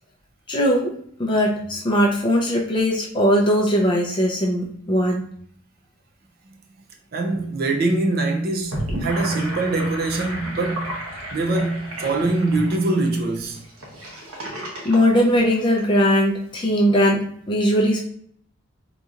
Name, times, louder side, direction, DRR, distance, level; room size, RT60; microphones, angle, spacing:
voice 1, 0.5-0.9 1.2-5.3 14.8-18.1, equal, 20° left, 0.5 m, -19 dB
voice 2, 7.1-11.0 11.3-13.6, right 2 dB, 45° right, 0.5 m, -23 dB
Gurgling / Sink (filling or washing), 8.5-16.0, equal, 90° right, 1.1 m, -33 dB
3.9 x 2.8 x 2.4 m
head